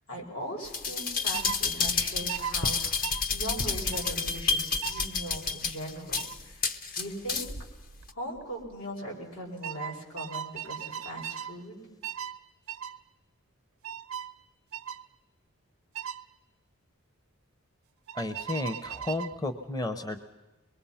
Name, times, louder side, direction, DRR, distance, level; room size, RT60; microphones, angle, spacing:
voice 1, 0.1-6.7 7.0-7.5 8.1-11.8, equal, 85° left, -1 dB, 5.5 m, -39 dB
sound 1, 0.6-7.6 8.1-8.2, left 5 dB, 40° left, 0.9 m, -30 dB
sound 2, 1.3-1.6 2.3-2.5 3.0-3.2 3.9-4.1 4.8-5.1 6.2-6.4 7.8-8.1 8.4-8.7 9.6-11.6 12.0-12.4 12.7-13.0 13.8-14.3 14.7-15.0 15.9-16.2 18.1-19.4, right 9 dB, 75° right, 0.8 m, -37 dB
voice 2, 18.1-20.2, left 2 dB, 15° left, 8 dB, 0.8 m, -33 dB
23.5 x 22.0 x 5.7 m, 1.1 s
head